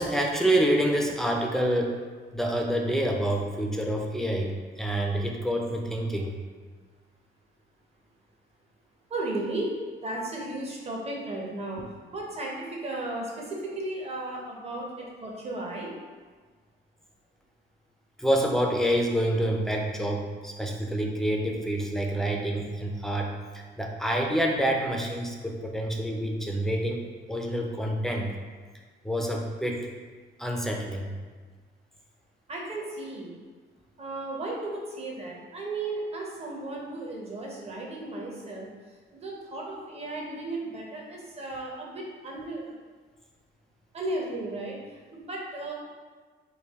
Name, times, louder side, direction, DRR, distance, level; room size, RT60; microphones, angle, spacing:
voice 1, 0.0-2.0 2.3-6.3 18.2-27.0 27.3-28.3 29.0-29.9 30.4-31.1, right 1 dB, ahead, 0 dB, 0.5 m, -27 dB
voice 2, 9.1-9.8 10.0-11.8 12.1-15.9 32.5-33.3 34.0-42.7 43.9-45.7, right 2 dB, 30° right, -2 dB, 0.8 m, -35 dB
3.3 x 2.3 x 3.5 m, 1.5 s
cardioid pair, 90°, 20 cm